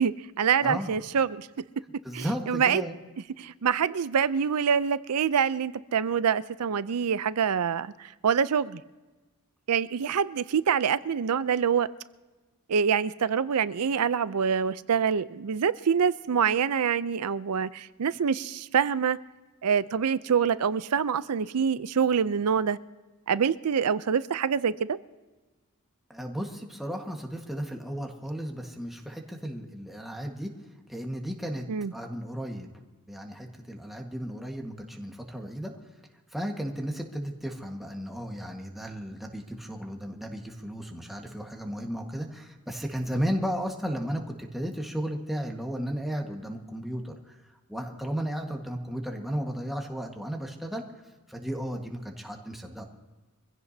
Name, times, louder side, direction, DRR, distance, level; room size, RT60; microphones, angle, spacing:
voice 1, 0.0-1.5 2.1-2.8 3.4-8.8 9.7-11.9 12.7-19.2 19.6-22.8 23.3-25.0 31.7-31.9, right 7 dB, 85° right, 0.5 m, -25 dB
voice 2, 0.6-1.0 2.0-3.0 26.1-30.5 30.9-31.6 31.9-32.7 33.1-35.7 36.3-47.4 47.7-50.8 51.3-52.8, equal, ahead, 1.5 m, -34 dB
25.0 x 16.0 x 2.8 m
head